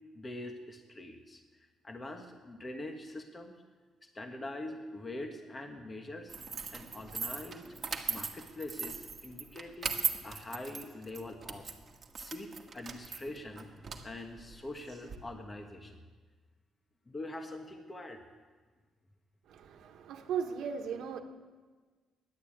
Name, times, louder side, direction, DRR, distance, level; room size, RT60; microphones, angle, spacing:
voice 1, 0.1-1.4 1.8-3.5 4.0-6.3 6.7-7.6 8.1-11.7 12.2-13.7 14.0-16.0 17.1-18.2, left 1 dB, 20° left, 4 dB, 1.4 m, -44 dB
sound 1, 6.3-15.2, right 5 dB, 35° right, 1.5 m, -39 dB
voice 2, 19.5-21.2, right 7 dB, 75° right, 4 dB, 1.3 m, -37 dB
12.5 x 11.0 x 8.7 m, 1.4 s
cardioid pair, 130°, 0 cm